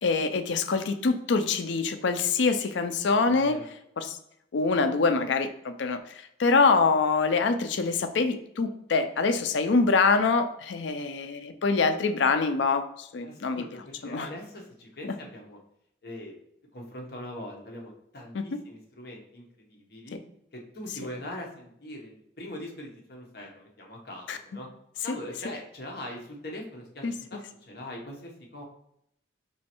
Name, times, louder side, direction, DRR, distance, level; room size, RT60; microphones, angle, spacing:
voice 1, 0.0-3.6 4.0-4.2 4.5-13.6 14.1-14.3 18.3-18.4 20.1-20.2 24.3-24.4 25.1-25.2 27.0-27.1, left 4 dB, 75° left, 9 dB, 0.5 m, -25 dB
voice 2, 3.3-3.7 13.2-15.6 16.0-16.4 16.7-20.2 20.5-24.7 25.0-28.6, left 1 dB, 55° left, -1 dB, 0.9 m, -42 dB
5.4 x 3.1 x 2.9 m, 0.76 s
head